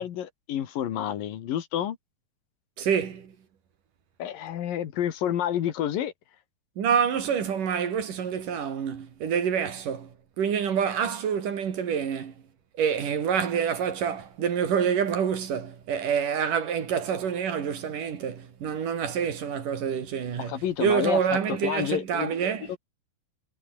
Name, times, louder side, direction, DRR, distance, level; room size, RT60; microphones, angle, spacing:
voice 1, 0.0-2.0 4.2-6.1 20.4-21.2 21.5-22.3 22.7-22.8, left 10 dB, 85° left, 3.5 m, -29 dB
voice 2, 2.8-3.3 6.8-10.1 10.4-12.3 12.8-22.8, right 7 dB, 70° right, 4.4 m, -27 dB
omnidirectional pair, 3.9 m